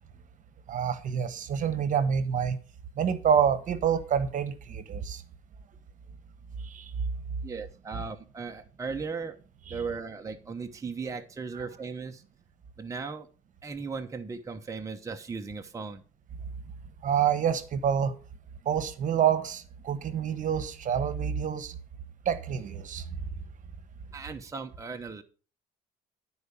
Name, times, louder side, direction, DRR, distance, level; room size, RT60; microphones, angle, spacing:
voice 1, 0.7-2.6 3.0-5.2 6.6-6.9 9.7-9.8 17.0-18.1 18.6-21.8 22.2-23.1, right 8 dB, 50° right, 1.2 m, -27 dB
voice 2, 7.4-9.4 9.7-12.2 12.8-13.3 13.6-16.0 24.1-25.2, right 4 dB, 20° right, 0.9 m, -37 dB
11.5 x 4.8 x 6.8 m
cardioid pair, 110°, 17 cm